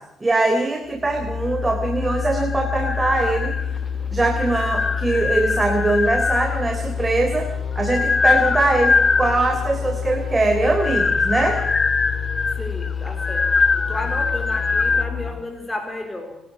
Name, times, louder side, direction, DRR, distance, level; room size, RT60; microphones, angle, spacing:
voice 1, 0.2-3.7 4.1-7.5 7.8-11.6, right 2 dB, 20° right, 4 dB, 3.5 m, -21 dB
sound 1, 0.8-15.3, left 7 dB, 65° left, 4.5 m, -28 dB
sound 2, 2.1-3.8 4.3-6.8 7.5-9.6 10.5-15.1, left 4 dB, 30° left, 0.9 m, -23 dB
voice 2, 12.6-16.4, left 2 dB, 15° left, 3 dB, 4.0 m, -32 dB
25.0 x 12.5 x 9.1 m, 0.93 s
cardioid pair, 90°, 0 cm